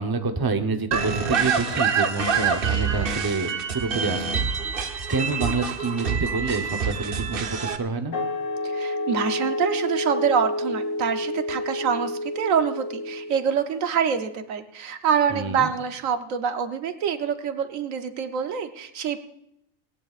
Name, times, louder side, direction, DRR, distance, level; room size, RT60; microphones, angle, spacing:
voice 1, 0.0-4.5 5.1-8.2 15.3-15.7, right 3 dB, 20° right, 6 dB, 0.7 m, -27 dB
sound 1, 0.9-7.8, right 6 dB, 50° right, 1.0 m, -26 dB
sound 2, 8.1-13.5, left 1 dB, 65° left, 1.3 m, -29 dB
voice 2, 8.6-19.2, right 7 dB, 80° right, 8 dB, 1.2 m, -26 dB
19.0 x 17.5 x 2.4 m, 0.79 s
omnidirectional pair, 1.4 m